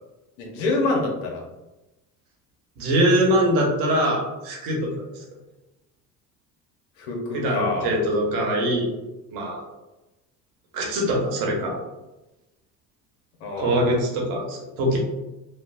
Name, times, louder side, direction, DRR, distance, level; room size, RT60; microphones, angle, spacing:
voice 1, 0.4-1.4 7.0-7.9 13.4-13.9, left 2 dB, 65° left, -1 dB, 1.1 m, -26 dB
voice 2, 2.8-4.9 7.3-8.9 9.3-9.6 10.7-11.7 13.6-15.0, right 1 dB, 70° right, -1 dB, 1.1 m, -23 dB
3.2 x 2.4 x 2.6 m, 1.0 s
hypercardioid pair, 70°, 46 cm